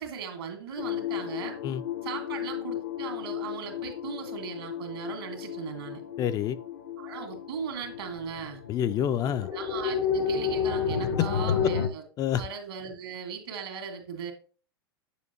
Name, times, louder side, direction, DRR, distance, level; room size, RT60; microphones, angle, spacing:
voice 1, 0.0-1.6 2.0-6.0 7.0-8.6 9.5-12.0 12.3-14.3, right 6 dB, 75° right, 2.0 m, -38 dB
sound 1, 0.8-11.9, left 7 dB, 65° left, 0.7 m, -32 dB
voice 2, 6.2-6.6 8.7-9.5 11.2-11.7 12.2-12.4, left 10 dB, 30° left, 0.3 m, -28 dB
7.8 x 7.0 x 2.9 m
hypercardioid pair, 100°, 13 cm